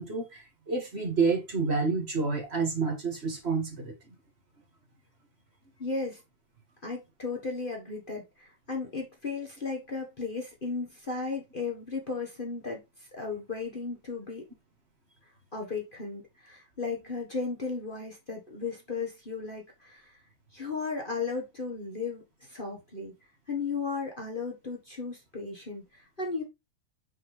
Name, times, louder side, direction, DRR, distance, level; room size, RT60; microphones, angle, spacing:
voice 1, 0.0-3.9, right 4 dB, 25° right, 1.9 m, -29 dB
voice 2, 5.8-6.2 6.8-12.8 13.1-14.4 15.5-20.1 20.5-23.1 23.5-26.4, left 4 dB, 40° left, 0.7 m, -35 dB
6.1 x 5.8 x 3.4 m
omnidirectional pair, 3.5 m